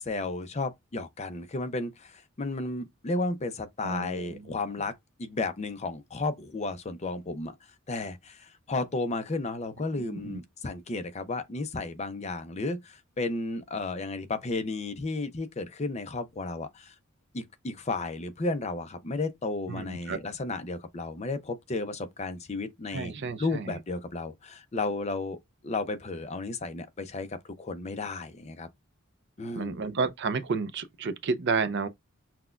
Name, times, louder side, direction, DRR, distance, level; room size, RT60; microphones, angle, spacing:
voice 1, 0.0-7.5 7.9-16.9 17.3-23.1 23.4-28.7 29.4-29.8, left 3 dB, 30° left, 0.5 m, -33 dB
voice 2, 3.8-4.4 10.0-10.4 19.7-20.2 22.9-23.8 29.5-31.9, right 4 dB, 55° right, 0.5 m, -31 dB
5.8 x 2.2 x 2.4 m
head